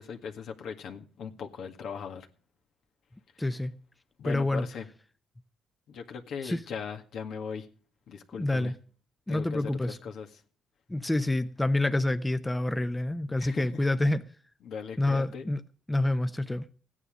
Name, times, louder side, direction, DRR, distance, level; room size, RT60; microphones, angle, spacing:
voice 1, 0.0-2.3 4.2-4.9 5.9-7.7 8.1-8.7 9.3-10.4 13.4-13.9 14.6-15.5, left 6 dB, 70° left, 1.9 m, -39 dB
voice 2, 3.4-3.7 4.2-4.7 6.4-6.6 8.4-8.7 9.3-10.0 10.9-14.2 15.0-15.6 15.9-16.6, left 2 dB, 15° left, 0.8 m, -27 dB
15.0 x 9.9 x 5.0 m
cardioid pair, 90°, 0 cm